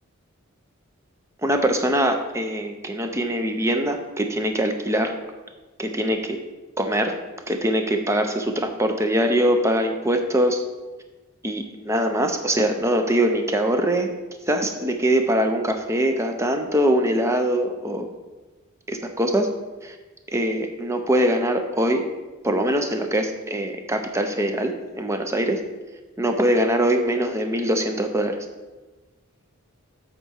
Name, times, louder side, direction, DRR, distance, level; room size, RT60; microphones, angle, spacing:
voice 1, 1.4-5.1 5.8-6.4 6.8-7.2 7.5-10.6 11.4-14.1 14.5-18.1 18.9-19.5 19.8-20.0 20.3-22.0 22.4-25.6 26.2-28.4, right 1 dB, 15° right, 5 dB, 0.6 m, -22 dB
8.1 x 3.7 x 6.4 m, 1.2 s
head